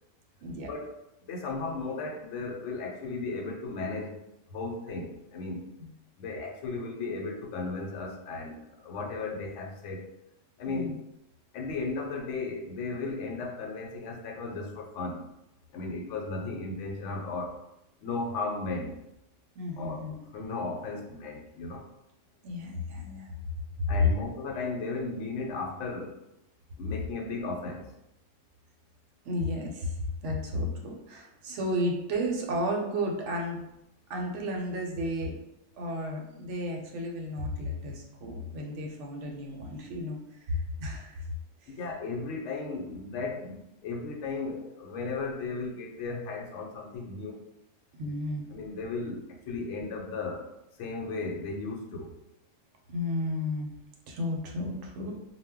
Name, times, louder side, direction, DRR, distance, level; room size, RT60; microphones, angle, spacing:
voice 1, 0.4-0.7 5.8-5.9 10.6-10.9 19.6-20.2 22.4-23.3 23.8-23.9 29.2-29.9 30.2-33.6 34.1-35.4 35.8-41.2 41.6-41.7 47.9-48.4 52.9-53.7 54.1-55.1, equal, 75° right, 1 dB, 0.9 m, -33 dB
voice 2, 1.3-4.2 4.5-5.7 6.2-10.1 10.6-11.0 11.5-15.2 15.7-17.6 18.0-19.0 19.8-20.1 20.3-21.9 23.9-26.1 26.8-27.9 41.7-47.4 48.5-50.5 50.8-52.1, left 3 dB, 75° left, 0 dB, 0.9 m, -35 dB
2.2 x 2.1 x 3.5 m, 0.86 s
omnidirectional pair, 1.3 m